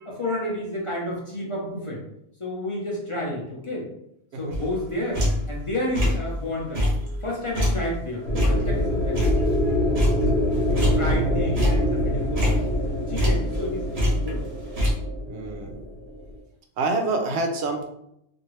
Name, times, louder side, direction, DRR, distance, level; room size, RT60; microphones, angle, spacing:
voice 1, 0.0-2.0 2.4-3.9 4.3-6.9 7.2-9.3 10.7-12.7 13.1-14.4, left 1 dB, 35° left, -4 dB, 0.7 m, -31 dB
sound 1, 4.5-5.6 5.9-6.4 6.8-9.7 10.0-11.3 11.5-13.7 14.0-14.9, left 1 dB, 40° right, 0.7 m, -25 dB
sound 2, 8.2-16.4, left 1 dB, 70° left, 1.0 m, -25 dB
voice 2, 10.7-11.6 15.3-15.8 16.8-17.9, right 3 dB, 80° right, 4 dB, 0.9 m, -29 dB
2.9 x 2.6 x 3.1 m, 0.77 s
omnidirectional pair, 1.1 m